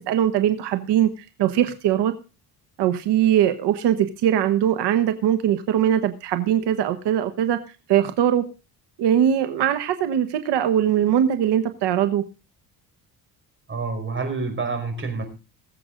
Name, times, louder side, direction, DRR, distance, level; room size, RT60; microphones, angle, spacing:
voice 1, 0.1-1.1 1.4-2.1 2.8-7.6 7.9-8.5 9.0-12.2, right 10 dB, 90° right, 9 dB, 1.3 m, -21 dB
voice 2, 13.7-15.3, right 4 dB, 30° right, 4 dB, 5.1 m, -28 dB
21.0 x 7.8 x 3.8 m, 0.32 s
cardioid pair, 115°, 39 cm